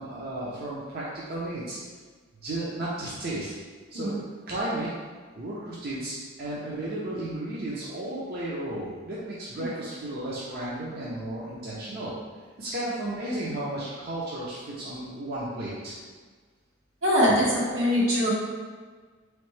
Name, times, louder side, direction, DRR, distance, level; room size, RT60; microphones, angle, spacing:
voice 1, 0.0-1.8 2.4-3.5 3.9-4.1 4.5-4.9 5.3-12.1 12.6-15.9, right 1 dB, 55° right, -7 dB, 0.7 m, -33 dB
voice 2, 17.0-18.3, equal, 85° right, -6 dB, 1.3 m, -22 dB
3.9 x 3.2 x 3.2 m, 1.5 s
head